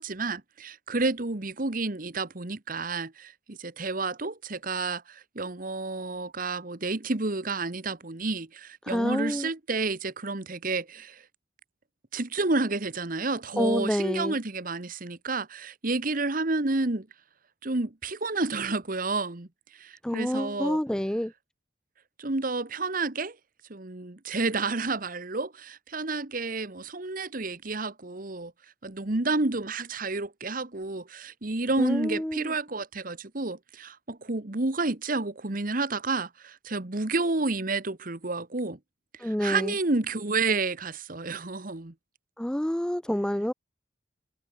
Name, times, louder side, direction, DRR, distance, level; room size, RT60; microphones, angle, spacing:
voice 1, 0.0-11.2 12.1-17.1 17.6-19.5 19.8-20.8 22.2-23.4 23.7-28.5 28.8-38.8 39.2-41.9, right 3 dB, 45° right, 1.3 m, -30 dB
voice 2, 8.8-9.5 13.6-14.4 20.0-21.3 31.8-32.5 39.2-39.7 42.4-43.5, equal, 5° left, 0.3 m, -28 dB
head